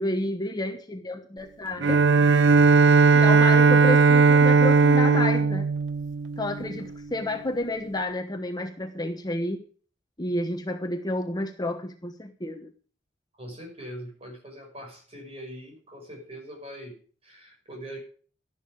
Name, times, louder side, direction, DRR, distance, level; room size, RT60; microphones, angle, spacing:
voice 1, 0.0-2.0 3.1-5.7 6.4-9.6 10.2-12.7, left 1 dB, 20° left, 5 dB, 1.1 m, -30 dB
Bowed string instrument, 1.8-6.9, right 4 dB, 70° right, 0.5 m, -18 dB
voice 2, 13.4-16.9 17.2-18.0, equal, 35° right, 2 dB, 6.0 m, -42 dB
12.5 x 11.5 x 5.0 m, 0.41 s
head